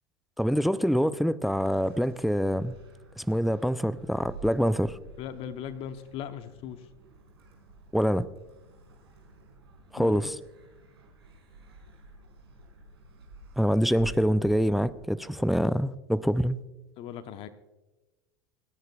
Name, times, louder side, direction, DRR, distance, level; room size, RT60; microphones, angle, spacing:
voice 1, 0.4-2.7 3.2-5.0 7.9-8.3 9.9-10.4 13.6-16.6, equal, ahead, 0.4 m, -25 dB
sound 1, 1.4-15.5, right 2 dB, 80° right, 5.0 m, -50 dB
voice 2, 5.2-6.9 10.0-10.3 17.0-17.5, left 9 dB, 45° left, 0.9 m, -38 dB
30.0 x 10.5 x 2.3 m
hypercardioid pair, 85°, 13 cm